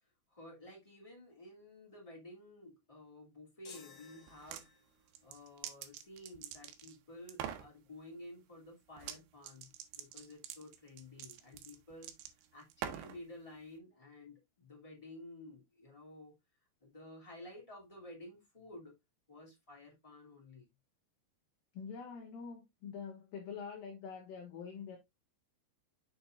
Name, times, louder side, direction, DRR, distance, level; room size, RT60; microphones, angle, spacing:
voice 1, 0.3-4.7 5.2-12.2 12.5-16.3 16.8-18.9 19.3-20.7, left 1 dB, 10° left, 1.7 m, -53 dB
sound 1, 3.6-5.1, left 5 dB, 45° left, 2.1 m, -56 dB
sound 2, 4.3-4.7 5.1-7.0 7.3-7.7 9.0-9.2 9.4-13.2, right 10 dB, 80° right, 2.7 m, -45 dB
voice 2, 21.7-25.0, left 6 dB, 65° left, 2.4 m, -45 dB
6.7 x 6.6 x 2.5 m
omnidirectional pair, 5.2 m